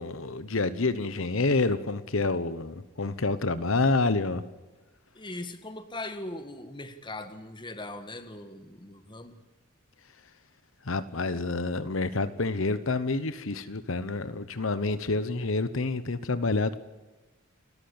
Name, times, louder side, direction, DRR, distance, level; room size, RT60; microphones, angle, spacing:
voice 1, 0.0-4.4 10.8-16.8, left 3 dB, 75° left, 13 dB, 1.1 m, -28 dB
voice 2, 5.2-9.4, left 2 dB, 20° left, 9 dB, 1.8 m, -40 dB
30.0 x 13.5 x 8.7 m, 1.2 s
head